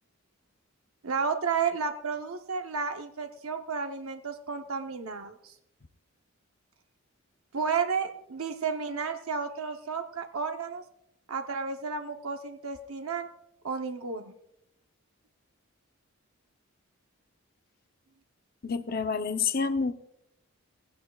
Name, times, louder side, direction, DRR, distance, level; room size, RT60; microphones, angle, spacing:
voice 1, 1.0-5.5 7.5-10.8 11.3-13.3 13.6-14.4, right 5 dB, 85° right, 5 dB, 0.8 m, -32 dB
voice 2, 18.6-19.9, left 5 dB, 45° left, 9 dB, 0.6 m, -28 dB
19.0 x 15.5 x 2.3 m, 0.82 s
head